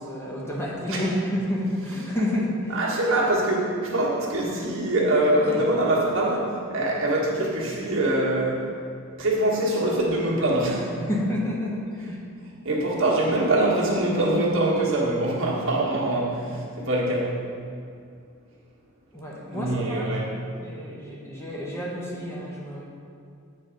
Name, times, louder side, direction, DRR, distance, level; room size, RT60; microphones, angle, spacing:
voice 1, 0.0-2.9 5.4-5.7 11.1-12.2 19.1-22.8, left 1 dB, 10° left, -4 dB, 0.9 m, -30 dB
voice 2, 2.7-8.7 9.2-11.1 12.0-12.1 12.4-17.4 19.5-20.3, right 1 dB, 60° right, -5 dB, 1.4 m, -24 dB
8.5 x 4.0 x 5.1 m, 2.3 s
head